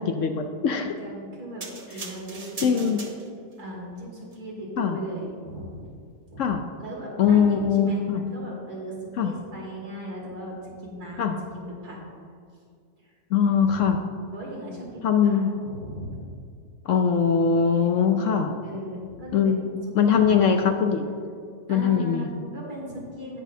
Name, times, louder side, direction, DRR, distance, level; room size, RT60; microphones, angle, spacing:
voice 1, 0.0-0.9 2.6-3.0 4.8-5.0 6.4-6.6 7.2-8.2 9.2-9.3 11.2-11.4 13.3-14.0 15.0-15.6 16.9-18.6 19.3-19.6 19.9-21.1 21.7-22.4, left 6 dB, 65° left, 6 dB, 0.8 m, -21 dB
voice 2, 0.7-2.9 3.6-5.7 6.3-6.4 6.8-9.0 9.2-12.0 13.0-13.1 13.6-13.8 14.3-16.3 18.6-20.7 21.7-23.4, right 1 dB, 75° right, -3 dB, 2.9 m, -37 dB
sound 1, 1.6-3.6 4.2-4.4, right 3 dB, 30° right, 0.8 m, -39 dB
18.0 x 6.1 x 2.7 m, 2.2 s
omnidirectional pair, 1.6 m